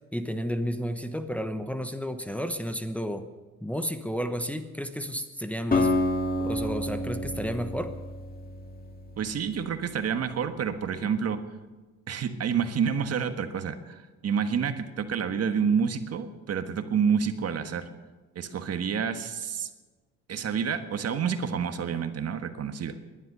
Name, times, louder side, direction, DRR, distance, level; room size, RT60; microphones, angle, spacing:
voice 1, 0.1-3.3 3.6-5.9 6.4-8.0, equal, 5° left, 7 dB, 1.1 m, -32 dB
Acoustic guitar, 5.7-9.8, left 1 dB, 30° left, 2.1 m, -29 dB
voice 2, 9.2-11.4 12.1-17.9 18.3-19.7 20.3-22.9, right 7 dB, 55° right, 8 dB, 1.4 m, -28 dB
19.0 x 11.0 x 6.8 m, 1.3 s
cardioid pair, 90°, 30 cm